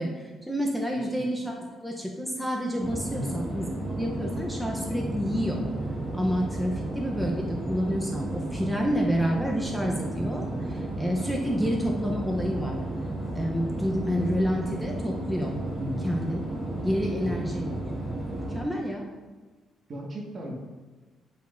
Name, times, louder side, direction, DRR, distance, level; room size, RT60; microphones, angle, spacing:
voice 1, 0.0-5.6 6.1-12.8 13.3-15.6 16.0-16.4 16.8-17.7 18.5-19.1, equal, ahead, -1 dB, 0.8 m, -29 dB
sound 1, 2.8-18.6, right 1 dB, 25° right, 1.8 m, -33 dB
voice 2, 19.9-20.5, equal, 50° right, -1 dB, 1.7 m, -36 dB
9.8 x 5.4 x 2.6 m, 1.3 s
cardioid pair, 90°, 0 cm